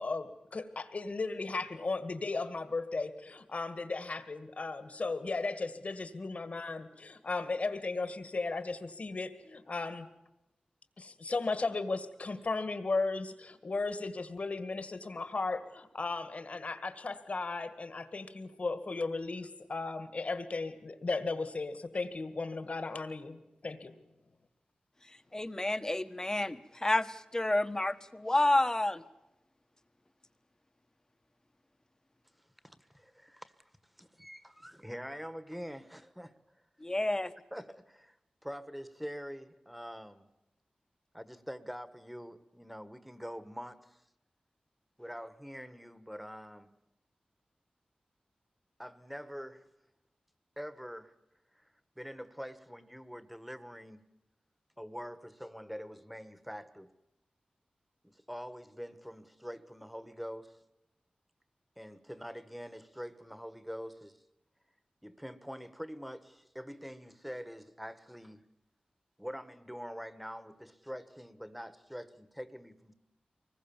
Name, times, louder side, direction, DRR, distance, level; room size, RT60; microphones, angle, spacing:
voice 1, 0.0-10.1 11.0-23.9, left 3 dB, 55° left, 11 dB, 1.9 m, -36 dB
voice 2, 25.3-29.0 36.8-37.3, left 1 dB, 20° left, 10 dB, 1.2 m, -30 dB
voice 3, 32.6-33.5 34.0-36.3 37.5-38.1 38.4-40.2 41.1-44.0 45.0-46.7 48.8-49.6 50.6-51.1 52.0-54.0 54.8-56.9 58.0-60.6 61.8-64.1 65.0-68.4 69.2-72.9, equal, ahead, 12 dB, 1.5 m, -45 dB
24.5 x 20.5 x 7.3 m, 0.92 s
wide cardioid pair, 70°, 3 cm